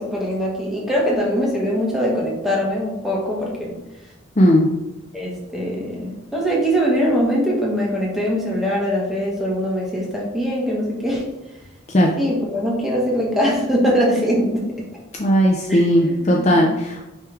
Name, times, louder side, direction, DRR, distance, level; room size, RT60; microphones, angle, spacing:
voice 1, 0.0-3.7 5.1-11.2 12.2-14.6 15.7-16.7, equal, ahead, -4 dB, 1.4 m, -22 dB
voice 2, 4.4-4.7 11.9-12.1 15.2-17.0, equal, 35° left, 0 dB, 0.5 m, -16 dB
9.0 x 3.3 x 3.5 m, 0.99 s
head